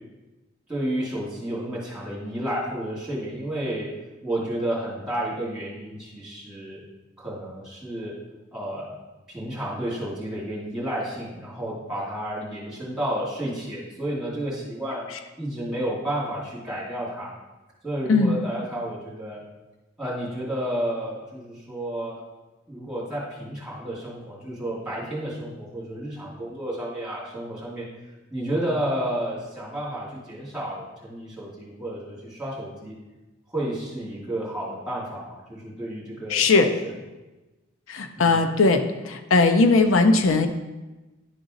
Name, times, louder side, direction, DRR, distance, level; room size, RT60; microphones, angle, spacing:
voice 1, 0.7-3.9 4.2-6.8 7.2-8.1 8.5-9.0 9.3-15.1 15.4-17.3 17.8-19.4 20.0-22.2 22.7-27.9 28.3-32.9 33.5-36.9 38.2-38.4, right 1 dB, 5° right, -7 dB, 2.5 m, -31 dB
voice 2, 36.3-36.7 37.9-40.5, left 3 dB, 90° left, 7 dB, 0.6 m, -19 dB
11.0 x 4.0 x 3.8 m, 1.1 s
head